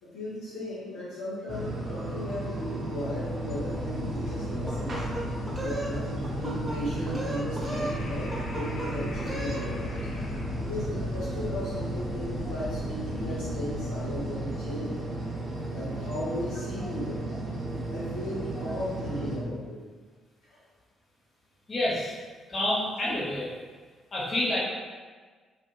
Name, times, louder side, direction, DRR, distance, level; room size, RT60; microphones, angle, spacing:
voice 1, 0.0-5.0 5.6-10.0 10.5-15.0 15.7-17.3 17.9-19.8 20.5-20.6, equal, 80° left, -11 dB, 0.9 m, -36 dB
sound 1, 1.5-19.4, right 1 dB, 50° right, 0.6 m, -34 dB
sound 2, 3.0-14.9, left 3 dB, 65° left, 0.4 m, -39 dB
sound 3, 4.7-5.9 6.2-6.8 7.1-8.0 8.3-8.9 9.2-9.6, right 1 dB, 20° right, 0.9 m, -35 dB
voice 2, 21.7-22.2 22.5-23.5 24.1-24.6, left 1 dB, 45° left, -7 dB, 1.0 m, -28 dB
2.7 x 2.7 x 2.3 m, 1.5 s
hypercardioid pair, 45°, 0 cm